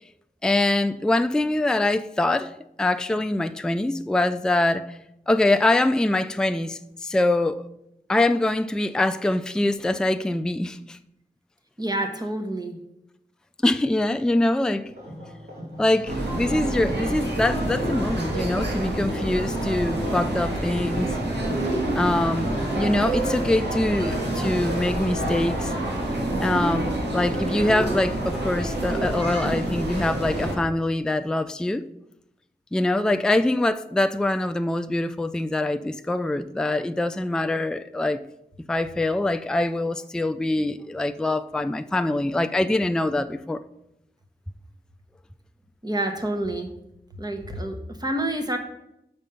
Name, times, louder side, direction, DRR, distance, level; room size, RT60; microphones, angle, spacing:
voice 1, 0.4-2.5 2.8-5.0 5.3-7.6 8.1-11.0 13.6-14.9 15.8-21.2 21.9-25.7 26.4-31.8 32.7-38.2 38.7-43.6, left 2 dB, 5° left, 0.3 m, -24 dB
voice 2, 11.8-12.8 45.8-46.7 47.1-48.6, right 1 dB, 25° right, 1.2 m, -28 dB
sound 1, 14.8-28.0, equal, 65° right, 2.6 m, -42 dB
sound 2, 16.1-30.5, right 1 dB, 85° right, 2.0 m, -27 dB
6.2 x 5.3 x 5.6 m
wide cardioid pair, 60°, 17 cm